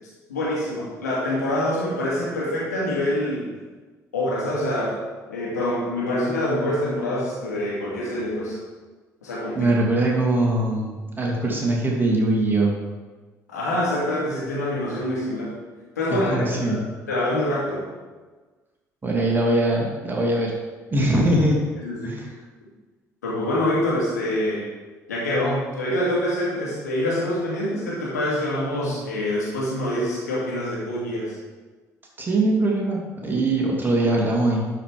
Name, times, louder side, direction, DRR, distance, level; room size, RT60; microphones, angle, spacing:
voice 1, 0.3-3.4 4.1-5.0 5.3-8.6 9.2-9.7 13.5-15.5 16.0-16.8 17.1-17.8 21.8-22.1 23.2-24.6 25.1-31.3, left 1 dB, 80° left, -6 dB, 2.5 m, -25 dB
voice 2, 9.5-12.7 16.1-16.8 19.0-20.5 20.9-21.7 22.0-22.3 32.2-34.6, right 1 dB, 20° right, -2 dB, 2.5 m, -22 dB
11.5 x 5.0 x 5.0 m, 1.3 s
figure-of-eight pair, 50°, 9 cm